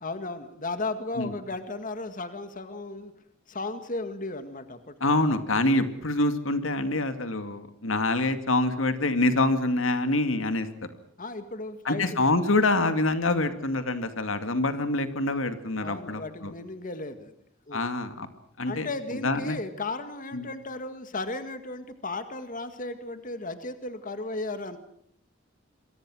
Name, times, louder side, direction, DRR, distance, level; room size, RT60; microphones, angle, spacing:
voice 1, 0.0-3.1 3.5-5.2 11.2-12.3 15.8-17.3 17.7-17.9 18.7-24.8, left 2 dB, 45° left, 9 dB, 1.9 m, -35 dB
voice 2, 5.0-10.7 11.8-16.5 17.7-18.3 18.6-18.9 19.2-19.6 20.3-20.5, left 2 dB, 85° left, 9 dB, 2.3 m, -26 dB
27.5 x 23.0 x 6.3 m, 0.70 s
head